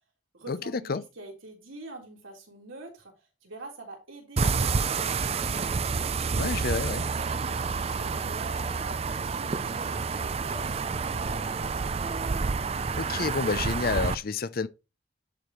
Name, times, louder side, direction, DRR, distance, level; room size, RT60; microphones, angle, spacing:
voice 1, 0.3-5.7 6.4-11.7, right 3 dB, 90° right, 3.8 m, -46 dB
sound 1, 4.4-14.1, right 4 dB, 30° right, 0.4 m, -29 dB
voice 2, 6.4-7.0 13.0-14.7, left 4 dB, 50° left, 0.6 m, -29 dB
11.0 x 5.1 x 3.0 m
head